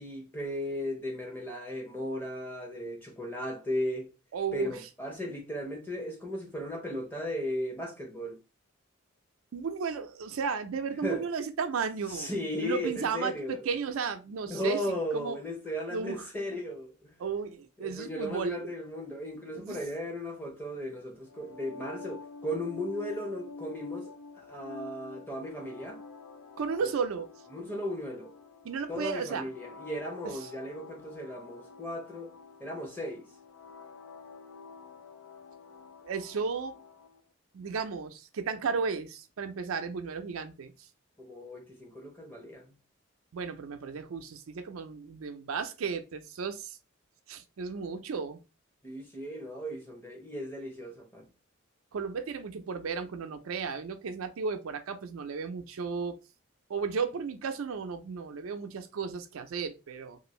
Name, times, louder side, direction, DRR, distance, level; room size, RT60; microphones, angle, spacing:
voice 1, 0.0-4.1 4.5-8.4 11.0-11.2 12.1-13.6 14.5-17.1 17.8-26.0 26.8-26.9 27.5-28.3 28.9-32.3 32.6-33.3 41.2-42.8 48.8-51.3, equal, 10° left, 0.8 m, -36 dB
voice 2, 4.3-4.8 9.5-12.3 12.6-15.4 15.9-16.3 17.2-18.7 19.5-19.8 26.6-27.3 27.6-27.7 28.6-29.5 30.2-30.5 36.0-36.8 37.5-40.9 43.3-46.8 47.3-48.4 51.9-56.2 56.7-60.2, right 5 dB, 80° right, 0.4 m, -34 dB
sound 1, 21.3-37.2, left 4 dB, 85° left, 0.4 m, -48 dB
2.6 x 2.4 x 3.0 m
head